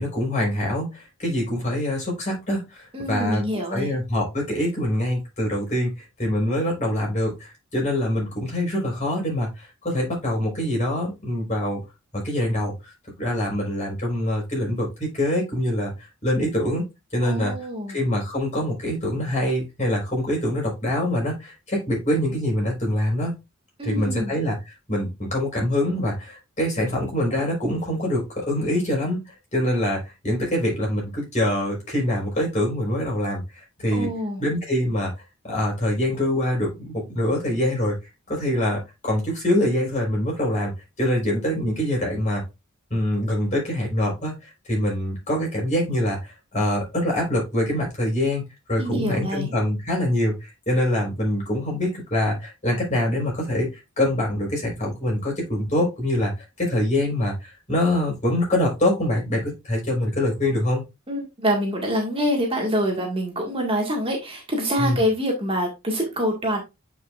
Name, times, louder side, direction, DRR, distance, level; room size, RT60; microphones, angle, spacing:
voice 1, 0.0-5.9 6.2-7.4 7.7-9.5 9.8-11.8 12.1-12.7 13.2-15.9 16.2-16.8 17.1-17.6 17.9-23.4 23.8-24.6 24.9-29.2 29.5-33.4 33.8-34.1 34.4-35.1 35.4-37.9 38.3-40.7 41.0-42.4 42.9-44.3 44.7-46.2 46.5-48.4 48.7-50.4 50.7-53.7 54.0-56.3 56.6-57.3 57.7-60.8 64.8-65.0, left 1 dB, 35° left, -2 dB, 4.4 m, -24 dB
voice 2, 2.9-4.0 17.2-18.0 23.8-24.3 33.9-34.4 48.8-49.5 61.1-66.6, equal, 25° right, 1 dB, 1.7 m, -25 dB
8.7 x 5.2 x 2.5 m, 0.23 s
head